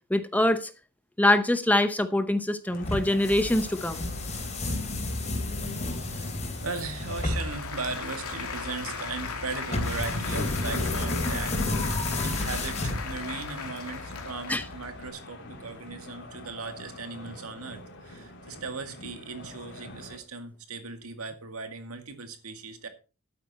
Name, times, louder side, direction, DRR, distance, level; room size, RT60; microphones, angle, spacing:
voice 1, 0.1-0.7 1.2-4.1 14.5-14.6, left 1 dB, 5° left, 0.8 m, -24 dB
sound 1, 2.7-20.2, left 1 dB, 55° left, 3.2 m, -45 dB
sound 2, 2.8-13.4, left 2 dB, 30° left, 3.6 m, -31 dB
voice 2, 5.9-6.4 6.6-22.9, right 4 dB, 75° right, 2.2 m, -38 dB
Applause / Crowd, 6.3-15.1, left 5 dB, 80° left, 2.5 m, -38 dB
12.5 x 9.3 x 4.2 m
head